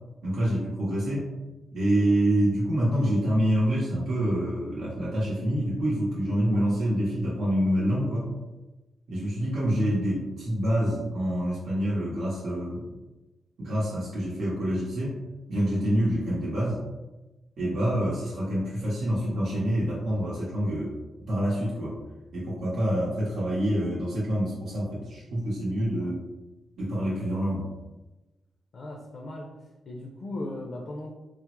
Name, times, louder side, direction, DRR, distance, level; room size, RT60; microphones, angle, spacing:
voice 1, 0.2-1.3 1.7-8.3 9.1-12.9 13.6-15.1 15.5-16.8 17.6-20.9 21.3-22.0 22.3-26.2 26.8-27.7, equal, 85° right, -7 dB, 0.8 m, -26 dB
voice 2, 28.7-29.5 29.9-31.1, left 1 dB, 60° left, 0 dB, 0.4 m, -37 dB
3.4 x 2.0 x 2.9 m, 1.1 s
cardioid pair, 105°, 0 cm